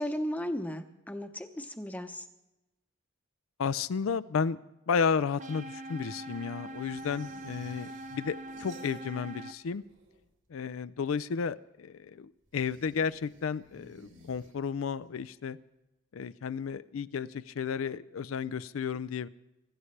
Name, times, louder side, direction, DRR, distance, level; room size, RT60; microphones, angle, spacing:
voice 1, 0.0-2.3, equal, 10° left, 7 dB, 0.8 m, -35 dB
voice 2, 3.6-4.6 4.9-9.8 10.5-15.6 16.1-19.3, left 6 dB, 90° left, 14 dB, 0.4 m, -33 dB
sound 1, 5.4-9.5, right 1 dB, 35° right, 0.5 m, -43 dB
sound 2, 6.8-9.4 9.6-10.5 12.5-15.0, right 1 dB, 65° right, 3.1 m, -56 dB
24.5 x 12.5 x 3.3 m, 0.97 s
head